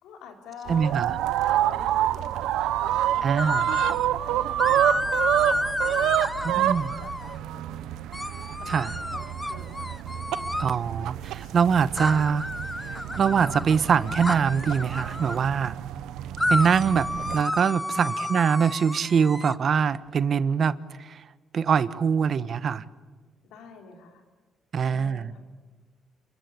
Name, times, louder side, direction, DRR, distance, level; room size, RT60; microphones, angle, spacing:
voice 1, 0.0-1.0 1.3-7.9 8.6-9.2 9.5-9.9 10.8-11.5 11.8-12.0 17.9-18.4 23.4-24.2 24.8-25.4, left 5 dB, 90° left, 4 dB, 4.1 m, -48 dB
voice 2, 0.7-1.1 3.2-3.7 6.4-6.9 8.7-8.9 10.6-12.5 13.2-15.8 16.5-21.2 21.5-22.8 24.7-25.3, right 6 dB, 55° right, 16 dB, 1.0 m, -23 dB
sound 1, 0.7-17.4, right 12 dB, 90° right, 0.9 m, -28 dB
sound 2, 3.4-4.1 4.6-7.4 8.1-10.8 12.0-15.4 16.4-19.5, left 1 dB, 10° left, 0.8 m, -31 dB
28.5 x 23.5 x 8.5 m, 1.3 s
cardioid pair, 90°, 0 cm